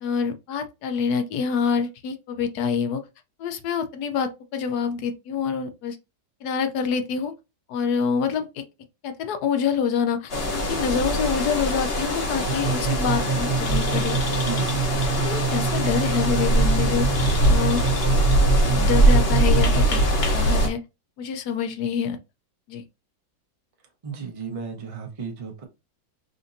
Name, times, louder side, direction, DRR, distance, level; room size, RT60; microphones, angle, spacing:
voice 1, 0.0-3.0 3.4-6.0 6.4-7.3 7.7-8.6 9.0-14.1 15.2-17.1 17.5-17.8 18.7-20.0 20.3-20.8 21.2-22.2 22.7-22.8, left 6 dB, 65° left, 1.1 m, -26 dB
sound 1, 10.3-20.7, right 1 dB, 40° left, 0.9 m, -22 dB
sound 2, 12.5-20.0, right 7 dB, 80° right, 1.3 m, -27 dB
voice 2, 14.3-14.7 24.0-25.6, right 6 dB, 35° right, 0.5 m, -34 dB
5.1 x 2.6 x 2.6 m
omnidirectional pair, 2.0 m